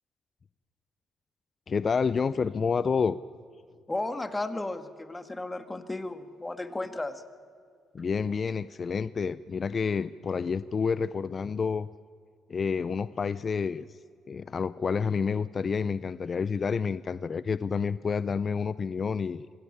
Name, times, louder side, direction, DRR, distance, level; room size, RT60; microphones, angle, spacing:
voice 1, 1.7-3.2 7.9-11.9 12.5-14.0 14.3-19.5, left 5 dB, 40° left, 15 dB, 0.5 m, -29 dB
voice 2, 3.9-7.2, left 2 dB, 15° left, 9 dB, 1.7 m, -34 dB
24.5 x 16.0 x 8.7 m, 2.2 s
cardioid pair, 90°, 0 cm